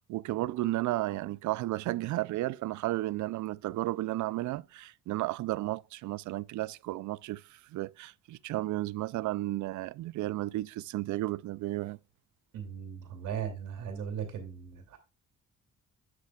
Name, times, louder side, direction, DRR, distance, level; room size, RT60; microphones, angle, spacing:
voice 1, 0.0-12.0, right 17 dB, 75° right, 0.5 m, -33 dB
voice 2, 12.5-15.0, right 8 dB, 90° right, 2.7 m, -38 dB
8.6 x 7.6 x 2.3 m
cardioid pair, 90°, 30 cm